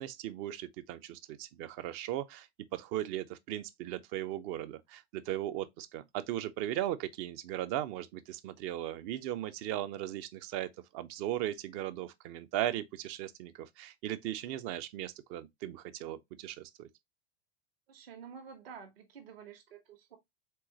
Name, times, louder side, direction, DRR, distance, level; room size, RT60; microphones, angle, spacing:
voice 1, 0.0-2.5 2.7-16.9, right 13 dB, 40° right, 0.6 m, -37 dB
voice 2, 17.9-20.2, right 7 dB, 60° right, 1.4 m, -50 dB
4.6 x 3.8 x 2.9 m
figure-of-eight pair, 90°, 33 cm